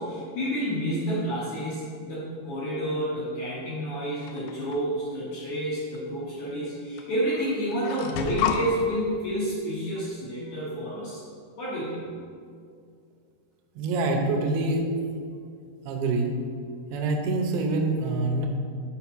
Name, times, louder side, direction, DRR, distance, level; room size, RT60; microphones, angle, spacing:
voice 1, 0.0-11.2 11.6-12.1, equal, 60° left, -8 dB, 2.1 m, -29 dB
sound 1, 4.3-4.8 5.9-6.0 7.0-7.1 7.3-8.6, left 9 dB, 85° left, 2.2 m, -30 dB
voice 2, 13.8-14.8 15.9-16.3 16.9-18.5, right 2 dB, 80° right, 3 dB, 3.1 m, -25 dB
6.9 x 5.3 x 6.0 m, 2.3 s
omnidirectional pair, 5.1 m